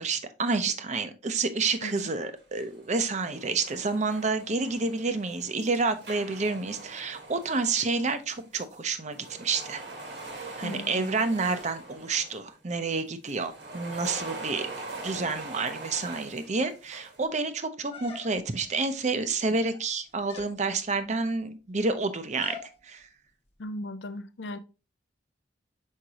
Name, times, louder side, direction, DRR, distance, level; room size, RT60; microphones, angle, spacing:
voice 1, 0.0-9.8 10.3-14.7 15.0-22.5 22.8-23.1, right 4 dB, 40° right, 0.7 m, -29 dB
sound 1, 1.6-2.2 2.5-8.8 9.1-12.5 13.3-17.2, right 2 dB, 65° right, 1.6 m, -43 dB
voice 2, 10.6-11.1 23.6-24.6, left 1 dB, 70° left, 0.6 m, -37 dB
sound 2, 17.9-18.7 19.5-19.9 20.3-20.6 22.4-22.7, left 4 dB, 30° left, 1.1 m, -43 dB
6.5 x 5.0 x 2.9 m
head